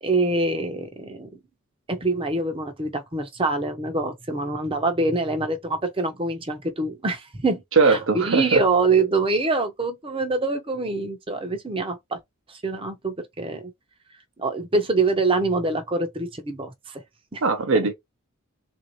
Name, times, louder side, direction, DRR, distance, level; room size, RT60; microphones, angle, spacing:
voice 1, 0.0-1.3 1.9-12.2 12.5-13.7 14.4-17.0 17.3-17.4 17.7-17.9, right 3 dB, 25° right, 0.7 m, -25 dB
voice 2, 7.8-8.6 17.4-17.9, right 4 dB, 60° right, 0.7 m, -20 dB
3.7 x 2.6 x 3.0 m
head